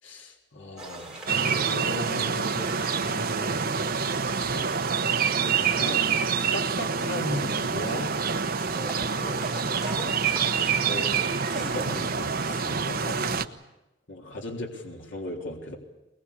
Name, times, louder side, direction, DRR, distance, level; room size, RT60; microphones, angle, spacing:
voice 1, 0.0-3.7 4.4-4.7 5.6-6.3 6.5-8.1 10.9-11.2 11.5-12.7 13.1-13.4 14.1-15.8, left 1 dB, 75° left, 1 dB, 3.6 m, -37 dB
sound 1, 0.8-12.9, right 2 dB, 5° right, 4.6 m, -42 dB
sound 2, 1.3-13.5, right 6 dB, 50° right, 1.0 m, -27 dB
voice 2, 9.2-9.5 9.9-10.3 11.5-13.3, left 1 dB, 40° left, 4 dB, 2.7 m, -45 dB
22.0 x 21.5 x 8.5 m, 0.99 s
head